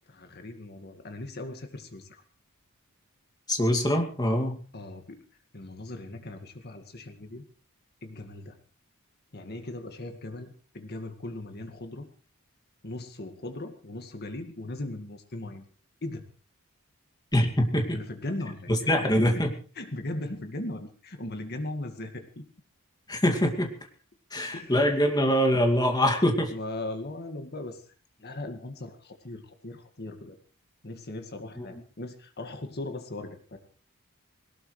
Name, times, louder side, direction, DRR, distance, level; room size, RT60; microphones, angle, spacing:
voice 1, 0.1-2.2 4.7-5.2 5.5-7.4 8.0-8.6 9.3-12.1 12.8-15.7 16.0-16.2 17.9-19.4 19.8-22.4 24.5-24.8 26.5-27.8 28.2-30.4 30.8-33.6, left 2 dB, 45° left, 6 dB, 2.0 m, -38 dB
voice 2, 3.5-4.6 17.3-18.0 18.7-19.5 23.1-23.7 24.3-26.5 31.6-31.7, equal, 20° left, 3 dB, 2.4 m, -24 dB
21.0 x 18.5 x 3.3 m, 0.39 s
head